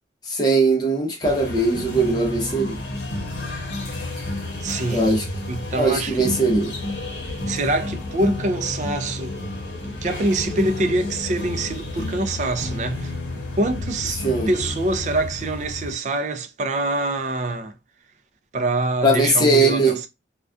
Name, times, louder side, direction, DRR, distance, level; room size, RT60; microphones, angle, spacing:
voice 1, 0.3-2.8 4.9-5.2 5.8-6.7 14.2-14.5 19.0-20.0, right 2 dB, 20° left, 0.6 m, -20 dB
sound 1, 1.2-15.9, left 2 dB, 80° left, 0.9 m, -31 dB
voice 2, 4.6-5.1 5.5-6.3 7.5-9.4 9.8-13.1 13.6-17.7 18.5-20.1, right 2 dB, 40° right, 0.4 m, -25 dB
2.3 x 2.2 x 2.4 m
head